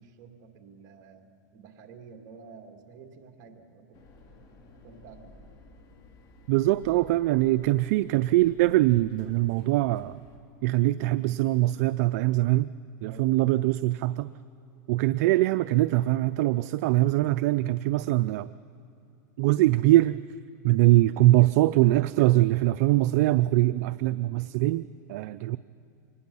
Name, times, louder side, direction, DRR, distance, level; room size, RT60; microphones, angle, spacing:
voice 1, 0.0-4.0 4.8-5.4 13.0-13.3, right 5 dB, 40° right, 3 dB, 2.3 m, -50 dB
sound 1, 3.9-10.4, left 2 dB, 40° left, 2.7 m, -54 dB
voice 2, 6.5-10.2 10.6-12.7 13.0-14.3 14.9-18.5 19.4-20.2 20.6-25.6, right 17 dB, 60° right, 14 dB, 0.4 m, -23 dB
24.5 x 19.5 x 5.5 m, 2.9 s
supercardioid pair, 135°, 10 cm